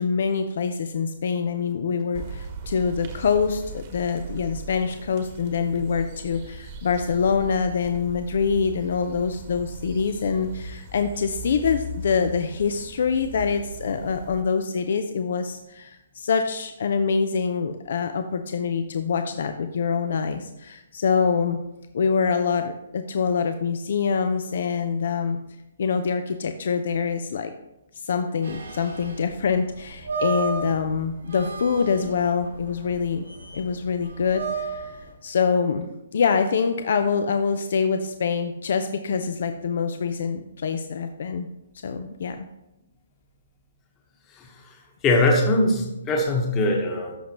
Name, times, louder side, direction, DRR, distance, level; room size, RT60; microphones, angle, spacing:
voice 1, 0.0-21.6 21.9-25.4 25.8-27.5 28.0-33.2 33.5-35.9 36.1-41.5 41.8-42.5, left 5 dB, 65° left, 8 dB, 0.5 m, -25 dB
sound 1, 2.1-14.4, right 2 dB, 40° right, 1.3 m, -39 dB
sound 2, 28.4-35.1, right 5 dB, 85° right, 2.1 m, -34 dB
voice 2, 44.3-44.8 45.0-47.2, left 2 dB, 20° left, 1 dB, 1.2 m, -22 dB
13.0 x 5.2 x 3.0 m, 0.91 s
hypercardioid pair, 135°, 0 cm